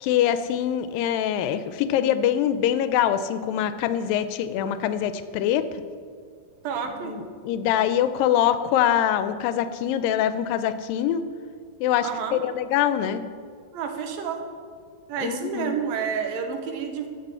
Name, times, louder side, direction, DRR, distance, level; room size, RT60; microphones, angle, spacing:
voice 1, 0.0-5.7 7.0-11.2 11.8-13.2 15.2-15.8, left 10 dB, 85° left, 12 dB, 2.4 m, -24 dB
voice 2, 6.6-7.2 12.0-12.4 13.7-14.4 15.1-17.1, right 6 dB, 90° right, 5 dB, 2.9 m, -29 dB
13.0 x 6.2 x 8.1 m, 2.2 s
omnidirectional pair, 4.0 m